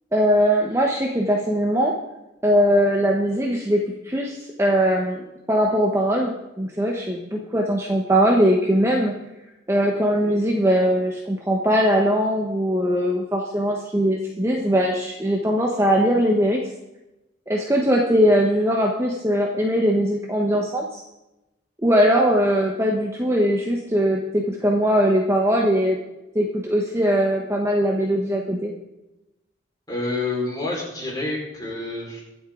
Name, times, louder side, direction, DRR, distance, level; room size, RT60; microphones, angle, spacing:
voice 1, 0.1-1.9 2.4-9.1 9.7-16.6 17.5-21.0 21.8-26.0 26.3-28.7, equal, 15° right, -1 dB, 1.1 m, -20 dB
voice 2, 29.9-32.2, left 2 dB, 20° left, -4 dB, 4.7 m, -28 dB
23.5 x 8.1 x 3.9 m, 0.97 s
head